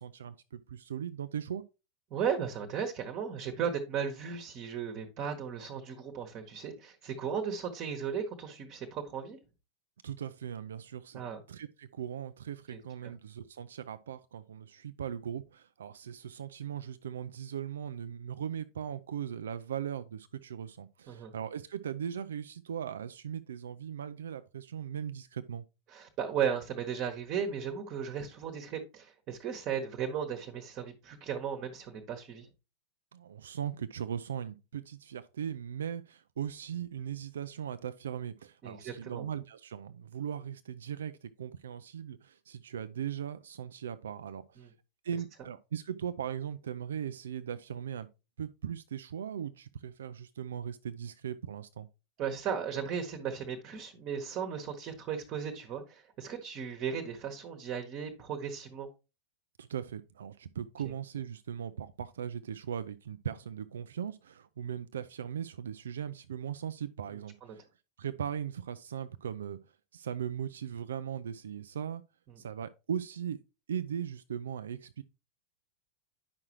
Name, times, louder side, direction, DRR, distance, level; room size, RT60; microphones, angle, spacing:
voice 1, 0.0-1.6 10.0-11.2 11.5-25.6 33.1-44.7 45.0-48.1 48.4-51.9 59.6-67.7 68.0-72.0 72.4-73.4 73.7-75.0, right 8 dB, 65° right, 0.4 m, -39 dB
voice 2, 2.1-9.4 11.1-11.4 12.7-13.1 21.1-21.3 25.9-32.5 38.6-39.2 44.6-44.7 52.2-58.9 67.4-67.5, right 7 dB, 35° right, 1.2 m, -36 dB
9.6 x 6.0 x 3.0 m
figure-of-eight pair, 90°, 0 cm